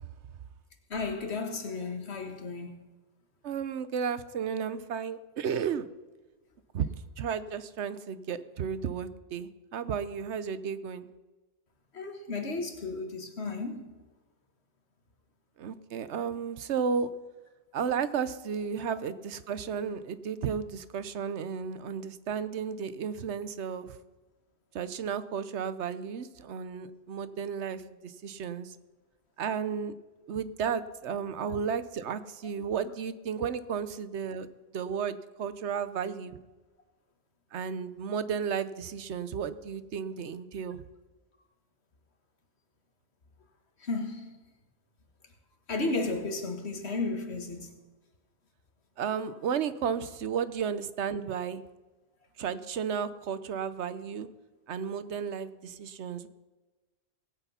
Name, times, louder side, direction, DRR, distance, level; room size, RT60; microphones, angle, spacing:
voice 1, 0.9-2.7 11.9-13.9 31.4-31.6 43.8-44.4 45.7-47.8 50.6-50.7, left 3 dB, 70° left, 1.8 m, -34 dB
voice 2, 3.4-5.9 6.7-6.9 7.2-11.1 15.6-17.1 17.7-24.0 24.7-28.8 29.4-30.0 30.3-34.5 34.7-36.4 37.5-40.8 49.0-51.6 52.4-54.3 54.7-56.3, right 7 dB, 85° right, 1.1 m, -33 dB
19.0 x 8.3 x 5.6 m
omnidirectional pair, 1.1 m